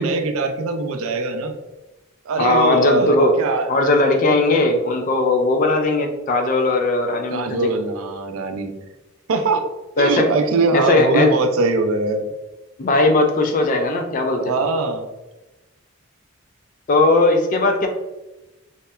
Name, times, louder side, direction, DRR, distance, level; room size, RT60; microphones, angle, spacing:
voice 1, 0.0-1.6 2.3-3.9 7.3-8.7 9.3-9.7 10.0-12.2 14.4-15.1, right 3 dB, 70° right, 6 dB, 0.3 m, -22 dB
voice 2, 2.4-3.4 3.7-7.7 10.0-10.3 10.7-11.3 12.8-14.5 16.9-17.9, left 2 dB, 35° left, 4 dB, 0.3 m, -18 dB
2.8 x 2.1 x 2.2 m, 1.0 s
head